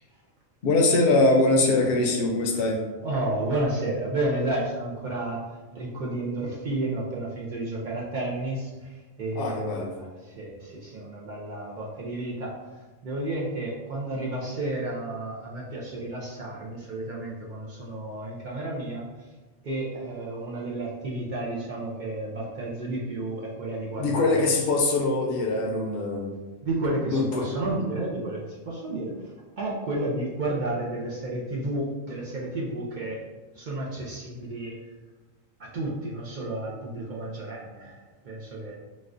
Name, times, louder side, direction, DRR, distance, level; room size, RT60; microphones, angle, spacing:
voice 1, 0.6-2.8 9.4-9.9 24.0-26.3 27.1-27.5, left 2 dB, 60° left, 1 dB, 0.7 m, -23 dB
voice 2, 3.0-5.4 5.7-19.3 19.6-24.5 26.6-33.2 33.5-34.8 35.6-38.8, right 2 dB, 70° right, -4 dB, 0.4 m, -32 dB
4.0 x 2.2 x 2.5 m, 1.2 s
omnidirectional pair, 1.4 m